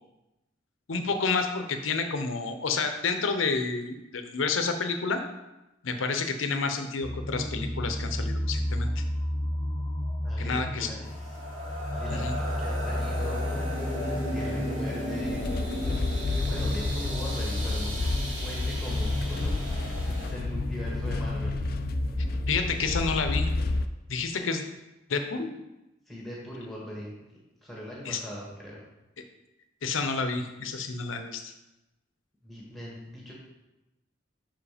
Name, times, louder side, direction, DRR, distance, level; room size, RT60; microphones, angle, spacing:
voice 1, 0.9-5.2 5.8-9.0 10.4-10.9 12.1-12.3 22.5-23.5 24.1-24.6 25.1-25.5 28.1-28.2 29.8-31.5, left 4 dB, 85° left, 7 dB, 0.7 m, -29 dB
sound 1, 7.0-22.5, left 1 dB, 20° left, 0.7 m, -33 dB
voice 2, 10.2-11.4 11.9-13.5 14.3-15.4 16.4-21.5 26.1-27.2 27.6-28.9 32.4-33.3, equal, ahead, -5 dB, 1.7 m, -40 dB
sound 2, 11.0-20.3, equal, 80° right, 2.1 m, -36 dB
sound 3, 15.2-23.9, left 3 dB, 50° left, 0.4 m, -31 dB
5.9 x 5.0 x 5.0 m, 0.97 s
head